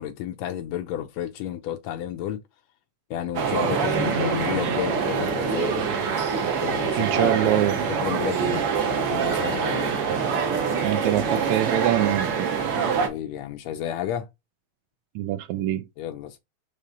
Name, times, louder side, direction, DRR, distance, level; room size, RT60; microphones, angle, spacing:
voice 1, 0.0-2.4 3.1-5.9 6.6-10.0 13.0-14.3 16.0-16.4, left 10 dB, 75° left, 1.7 m, -32 dB
sound 1, 3.3-13.1, right 6 dB, 55° right, 1.9 m, -25 dB
voice 2, 7.0-7.8 10.8-12.5 15.2-15.8, right 14 dB, 80° right, 1.9 m, -24 dB
5.5 x 3.3 x 5.1 m
omnidirectional pair, 3.4 m